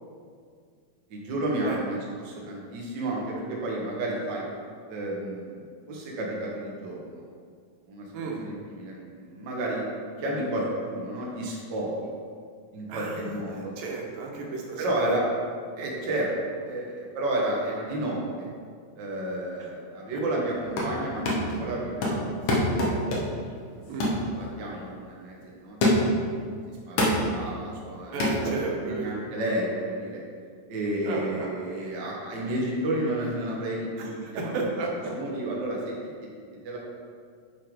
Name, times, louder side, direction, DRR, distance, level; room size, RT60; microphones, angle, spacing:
voice 1, 1.1-4.4 4.9-7.3 7.9-8.1 8.4-9.9 10.2-12.1 12.7-13.7 14.8-15.2 15.8-18.5 18.9-23.2 24.3-25.8 26.9-28.3 28.7-30.2 30.7-34.6 35.1-36.1 36.6-36.8, right 1 dB, 50° right, -3 dB, 1.4 m, -31 dB
voice 2, 12.9-15.1 23.9-24.2 28.1-29.2 31.0-31.5 34.0-35.1, right 3 dB, 85° right, -1 dB, 2.9 m, -33 dB
sound 1, 20.5-21.0 21.3-21.6 22.0-23.5 24.0-24.3 24.7-24.9 25.8-26.2 27.0-27.3 28.2-28.4, left 1 dB, 55° left, 1.6 m, -25 dB
7.1 x 6.3 x 4.9 m, 2.1 s
omnidirectional pair, 3.9 m